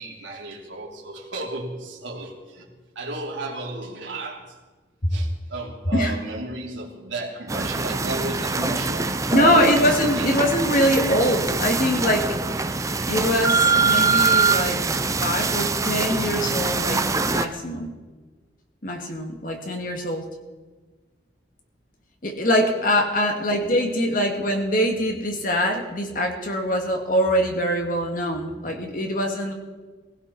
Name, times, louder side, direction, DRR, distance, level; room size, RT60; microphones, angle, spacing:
voice 1, 0.0-2.7 2.9-4.4 5.1-9.8 10.1-10.3 23.2-23.3, right 2 dB, 80° right, -1 dB, 3.3 m, -32 dB
sound 1, 7.5-17.5, right 4 dB, 15° right, 0.6 m, -23 dB
voice 2, 9.3-12.4 13.1-14.8 15.2-17.9 18.8-20.3 22.2-29.5, equal, 45° left, 3 dB, 2.1 m, -23 dB
20.0 x 16.0 x 4.2 m, 1.3 s
head